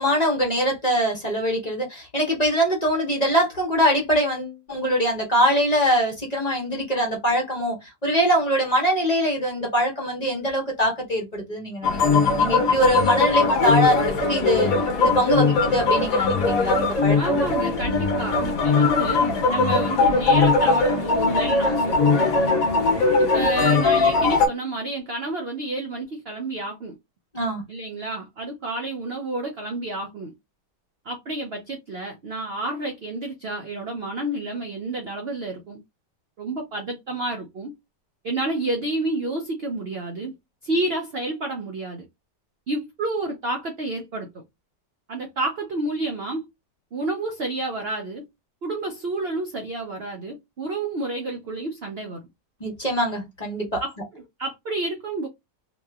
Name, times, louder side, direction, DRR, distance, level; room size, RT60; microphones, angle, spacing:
voice 1, 0.0-14.7 15.0-17.4 27.3-27.6 52.6-53.8, equal, 30° left, 0.9 m, -23 dB
sound 1, 11.8-24.5, left 3 dB, 60° left, 1.2 m, -20 dB
voice 2, 17.2-22.3 23.2-26.9 27.7-30.3 31.0-35.8 36.4-37.7 38.2-40.3 40.6-42.0 42.7-44.3 45.1-46.4 46.9-48.2 48.6-52.2 53.8-55.3, right 2 dB, 70° right, 0.5 m, -30 dB
2.9 x 2.9 x 2.2 m
omnidirectional pair, 1.9 m